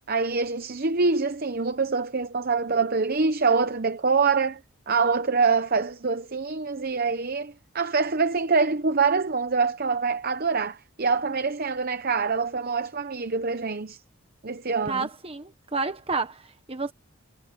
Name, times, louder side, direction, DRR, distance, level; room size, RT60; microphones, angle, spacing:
voice 1, 0.1-4.6 4.9-14.0 14.4-15.1, right 4 dB, 45° right, 0.8 m, -25 dB
voice 2, 14.9-16.9, right 4 dB, 25° right, 1.3 m, -30 dB
head